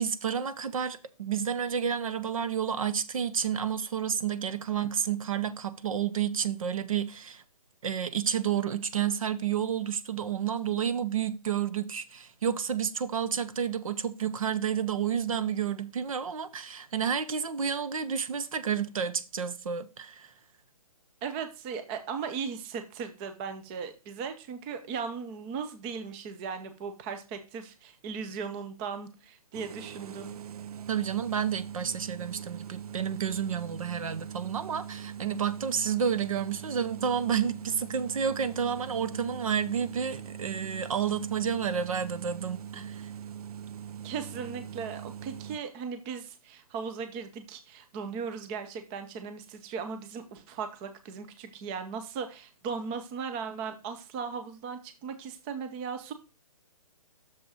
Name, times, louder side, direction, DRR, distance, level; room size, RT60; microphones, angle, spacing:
voice 1, 0.0-7.4 7.8-20.3 30.9-43.1, right 8 dB, 65° right, 0.8 m, -30 dB
voice 2, 21.2-30.3 44.0-56.1, right 6 dB, 20° right, 0.5 m, -37 dB
sound 1, 29.5-45.6, right 9 dB, 90° right, 0.4 m, -42 dB
6.7 x 5.1 x 4.9 m
hypercardioid pair, 160°, 19 cm